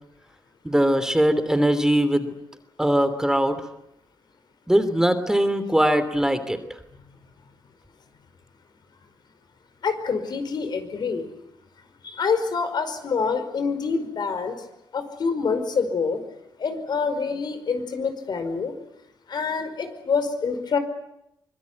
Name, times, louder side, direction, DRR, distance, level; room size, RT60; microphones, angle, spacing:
voice 1, 0.6-2.3 2.8-3.6 4.7-6.6, right 1 dB, 5° right, 10 dB, 3.0 m, -21 dB
voice 2, 9.8-11.3 12.0-14.6 14.9-16.2 16.6-18.7 19.3-20.8, left 5 dB, 65° left, 8 dB, 5.1 m, -26 dB
24.5 x 21.5 x 9.6 m, 0.83 s
cardioid pair, 80°, 8 cm